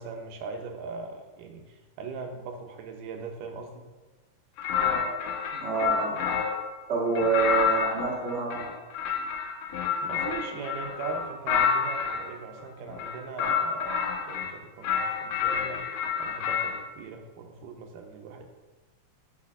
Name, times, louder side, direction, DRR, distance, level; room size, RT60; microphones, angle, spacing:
voice 1, 0.0-3.8 10.0-14.0 14.3-15.8 16.2-18.5, right 4 dB, 90° right, 4 dB, 2.3 m, -39 dB
sound 1, 4.6-6.7 7.2-12.3 12.9-14.5 14.8-16.8, left 6 dB, 90° left, 2.2 m, -28 dB
voice 2, 5.6-6.3 6.9-8.7, right 4 dB, 55° right, -5 dB, 0.7 m, -27 dB
8.4 x 4.7 x 2.5 m, 1.2 s
omnidirectional pair, 3.7 m